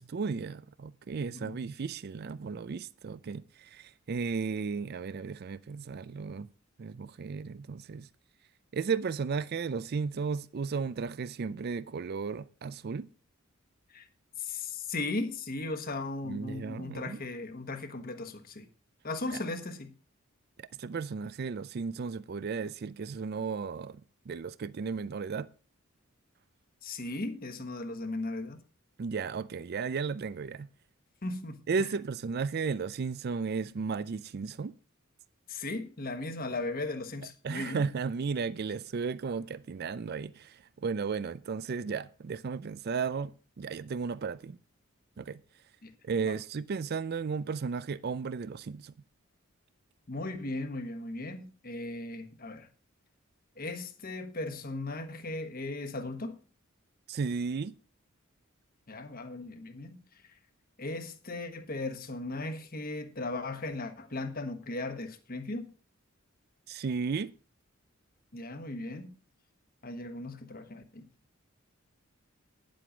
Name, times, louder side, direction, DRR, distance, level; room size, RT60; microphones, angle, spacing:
voice 1, 0.0-6.5 6.8-8.1 8.7-13.1 16.2-17.2 19.3-19.4 20.6-24.0 24.3-25.5 29.0-30.7 31.7-34.7 37.4-44.6 45.2-45.4 46.0-48.9 57.1-57.7 66.7-67.3, right 5 dB, 50° right, 0.4 m, -34 dB
voice 2, 14.4-18.7 19.0-19.9 26.8-28.6 31.2-31.9 35.5-37.8 45.8-45.9 46.2-46.3 50.1-52.7 53.6-56.4 58.9-60.0 60.8-65.7 68.3-69.2 69.8-71.0, left 2 dB, 45° left, 1.3 m, -37 dB
10.5 x 7.7 x 5.0 m
head